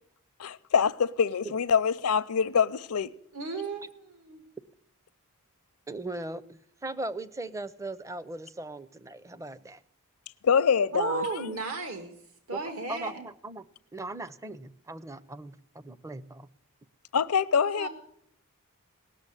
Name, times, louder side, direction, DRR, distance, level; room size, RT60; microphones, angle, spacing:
voice 1, 0.4-3.1 10.4-11.3 17.1-17.9, left 6 dB, 75° left, 0.6 m, -25 dB
voice 2, 3.3-4.4 10.9-12.1 12.5-13.2 17.8-17.9, right 4 dB, 70° right, 1.7 m, -34 dB
voice 3, 5.9-9.8 12.5-12.6 12.9-13.6 13.9-16.5, right 2 dB, 15° right, 0.5 m, -39 dB
18.5 x 6.8 x 9.8 m
head